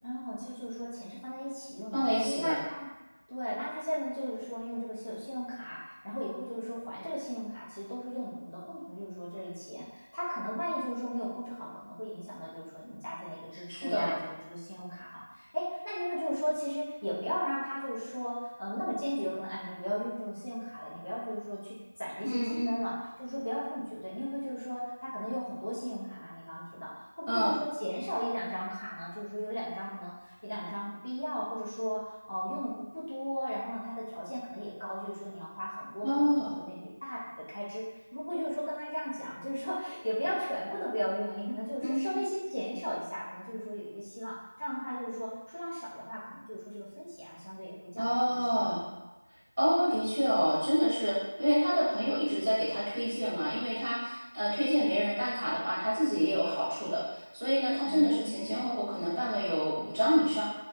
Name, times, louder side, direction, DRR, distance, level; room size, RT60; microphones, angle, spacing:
voice 1, 0.0-2.9 3.3-37.2 37.5-37.8 38.1-48.9 57.9-58.5, equal, 30° left, -8 dB, 0.6 m, -36 dB
voice 2, 1.9-2.6 13.7-14.1 22.2-22.7 27.3-27.5 36.0-36.5 41.8-42.2 48.0-48.8 49.6-60.4, equal, 10° right, -14 dB, 0.7 m, -28 dB
2.3 x 2.2 x 2.4 m, 1.1 s
figure-of-eight pair, 180°, 0 cm